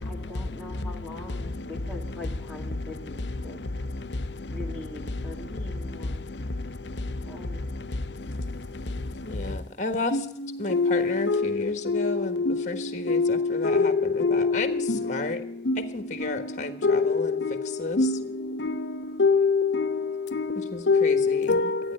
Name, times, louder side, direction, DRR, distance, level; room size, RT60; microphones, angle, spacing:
voice 1, 0.0-3.6 4.5-6.3 7.2-7.6, left 2 dB, 5° right, 2.0 m, -42 dB
voice 2, 9.2-10.2 10.6-15.4 15.9-17.4 17.8-18.0 20.5-21.7, left 2 dB, 45° left, 1.4 m, -32 dB
voice 3, 10.7-11.5 11.9-12.6 13.1-15.1 15.7-15.9 16.2-16.3 16.8-17.1 17.4-17.7 18.0-18.2 18.6-18.9 19.2-21.8, left 4 dB, 85° left, 0.8 m, -24 dB
13.0 x 9.4 x 8.8 m
head